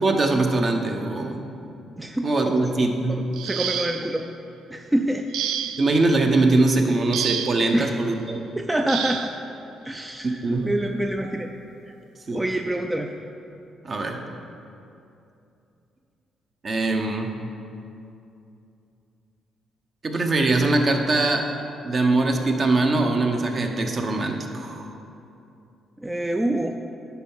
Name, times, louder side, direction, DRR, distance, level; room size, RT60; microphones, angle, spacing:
voice 1, 0.0-1.4 2.2-3.3 5.8-8.4 10.4-10.7 12.3-12.4 13.8-14.2 16.6-17.3 20.0-21.5 21.8-24.8, right 2 dB, 40° right, 3 dB, 0.9 m, -22 dB
voice 2, 2.0-2.7 3.4-4.3 4.7-5.3 5.6-5.7 7.7-7.9 8.6-9.3 9.8-11.5 11.9-12.0 12.3-13.1 26.0-26.7, right 1 dB, 10° right, 4 dB, 0.4 m, -26 dB
sound 1, 3.3-4.2 5.3-6.0 7.1-7.7 8.9-9.4 10.6-10.7 11.2-11.4, right 9 dB, 90° right, 0.3 m, -29 dB
10.0 x 4.5 x 5.6 m, 2.7 s
cardioid pair, 90°, 0 cm